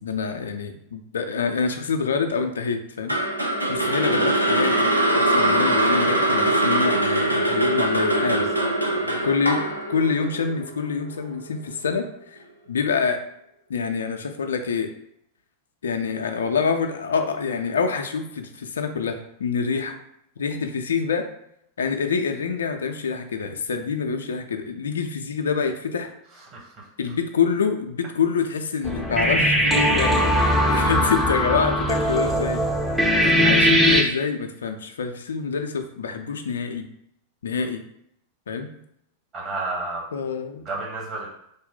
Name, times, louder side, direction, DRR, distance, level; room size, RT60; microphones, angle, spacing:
voice 1, 0.0-3.2 3.7-8.5 9.2-9.6 9.9-13.2 13.7-14.9 15.8-19.1 19.4-20.0 20.4-21.3 21.8-26.1 27.0-32.7 33.2-36.9 37.4-37.8 38.5-38.7 40.1-40.6, left 5 dB, 65° left, 6 dB, 0.3 m, -26 dB
sound 1, 3.1-11.3, right 1 dB, 85° right, 0.4 m, -22 dB
voice 2, 8.6-9.3 26.5-26.6 39.3-40.0 40.6-41.3, right 2 dB, 30° right, -3 dB, 1.2 m, -31 dB
sound 2, 28.8-34.0, equal, 5° right, 0.5 m, -20 dB
3.3 x 2.1 x 3.9 m, 0.75 s
figure-of-eight pair, 90°, 0 cm